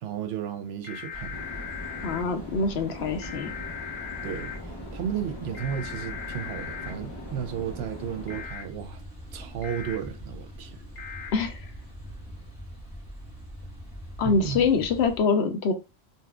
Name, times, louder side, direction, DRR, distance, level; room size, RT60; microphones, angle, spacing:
voice 1, 0.0-1.4 4.2-9.0 9.3-10.8 14.2-14.6, right 8 dB, 75° right, 0.8 m, -34 dB
sound 1, 0.8-2.2 3.2-4.6 5.5-6.9 8.3-8.6 9.6-10.0 11.0-11.3, left 8 dB, 55° left, 1.0 m, -38 dB
sound 2, 1.1-15.2, equal, 5° left, 1.3 m, -43 dB
sound 3, 1.3-8.5, left 1 dB, 25° left, 0.7 m, -42 dB
voice 2, 2.0-3.5 11.3-11.7 14.2-15.7, left 4 dB, 80° left, 0.9 m, -24 dB
4.1 x 2.3 x 2.3 m
omnidirectional pair, 1.1 m